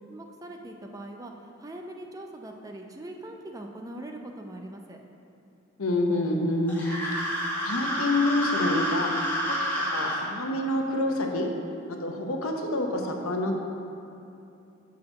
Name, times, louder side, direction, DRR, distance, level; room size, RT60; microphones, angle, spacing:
voice 1, 0.1-5.0, right 1 dB, 15° right, 3 dB, 0.4 m, -41 dB
voice 2, 5.8-7.0 7.6-9.1 9.9-11.5 11.9-13.6, left 1 dB, 85° left, 2 dB, 0.8 m, -27 dB
sound 1, 6.7-10.2, equal, 10° left, 1.4 m, -29 dB
6.3 x 4.7 x 6.0 m, 2.8 s
head